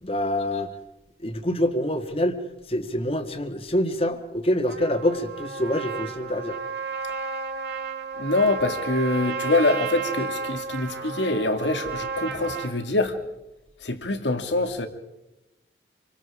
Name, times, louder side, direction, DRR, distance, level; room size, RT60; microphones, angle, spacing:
voice 1, 0.0-0.7 1.2-2.4 2.7-6.6, left 1 dB, 30° left, 1.7 m, -26 dB
Trumpet, 4.7-12.7, right 5 dB, 70° right, 2.9 m, -32 dB
voice 2, 8.2-13.2 13.8-14.9, left 2 dB, 85° left, 2.2 m, -24 dB
27.5 x 24.5 x 4.9 m
head